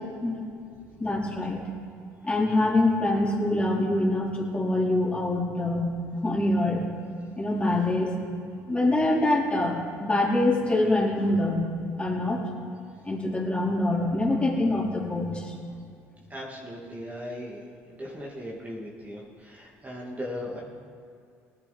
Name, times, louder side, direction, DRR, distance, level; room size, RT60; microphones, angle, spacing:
voice 1, 1.0-1.6 2.2-5.9 6.2-6.8 7.4-8.1 8.7-11.6 12.0-12.4 13.0-15.5, left 2 dB, 15° left, -4 dB, 4.2 m, -25 dB
voice 2, 16.3-20.6, equal, 20° right, -3 dB, 2.5 m, -38 dB
19.0 x 10.5 x 4.4 m, 2.5 s
hypercardioid pair, 70°, 7 cm